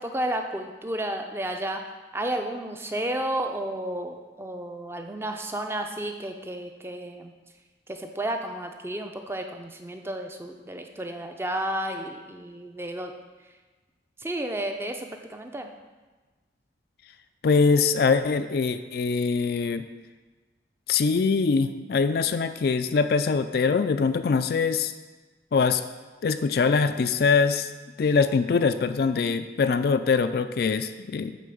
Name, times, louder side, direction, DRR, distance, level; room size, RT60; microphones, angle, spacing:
voice 1, 0.0-1.8 2.1-7.3 7.9-13.2 14.2-15.7, right 1 dB, 15° right, 4 dB, 0.5 m, -32 dB
voice 2, 17.4-19.8 20.9-24.9 25.5-25.8 26.2-27.7 28.0-31.4, left 5 dB, 55° left, 10 dB, 0.3 m, -23 dB
8.4 x 3.9 x 6.9 m, 1.3 s
head